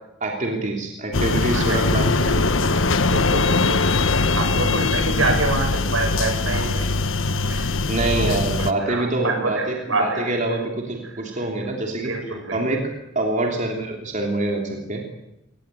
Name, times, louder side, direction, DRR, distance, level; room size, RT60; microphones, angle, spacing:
voice 1, 0.2-2.4 7.9-12.1 12.5-15.0, right 2 dB, 40° right, 1 dB, 3.1 m, -25 dB
sound 1, 1.1-8.7, left 3 dB, 75° left, 1.2 m, -21 dB
voice 2, 1.5-2.3 3.1-3.8 4.4-6.9 7.5-7.7 8.1-10.4 11.0-11.2 12.0-12.6, right 2 dB, 80° right, 5 dB, 6.9 m, -27 dB
23.0 x 19.0 x 9.1 m, 0.90 s
head